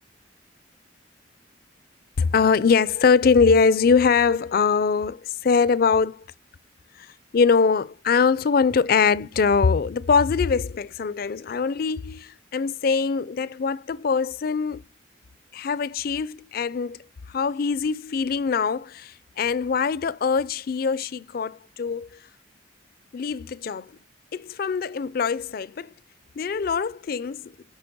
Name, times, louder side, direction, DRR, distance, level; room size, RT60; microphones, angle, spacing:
voice 1, 2.2-6.2 7.0-14.8 15.5-22.1 23.1-23.9 24.3-25.9 26.4-27.5, left 5 dB, 50° left, 0.4 m, -22 dB
10.5 x 4.0 x 5.9 m
head